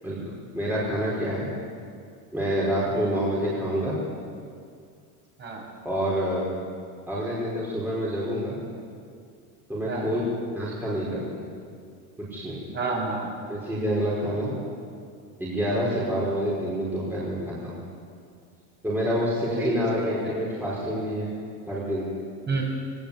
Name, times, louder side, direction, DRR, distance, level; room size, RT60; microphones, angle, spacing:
voice 1, 0.0-1.5 2.3-3.9 5.8-6.5 7.1-8.6 9.7-10.2 10.5-11.4 12.3-12.6 13.5-14.5 15.4-17.7 18.8-21.3 21.7-22.1, equal, 5° right, -7 dB, 5.1 m, -27 dB
voice 2, 12.7-13.3 19.5-20.4 22.5-22.6, right 3 dB, 25° right, -2 dB, 6.4 m, -30 dB
22.0 x 18.5 x 8.6 m, 2.3 s
supercardioid pair, 145°, 46 cm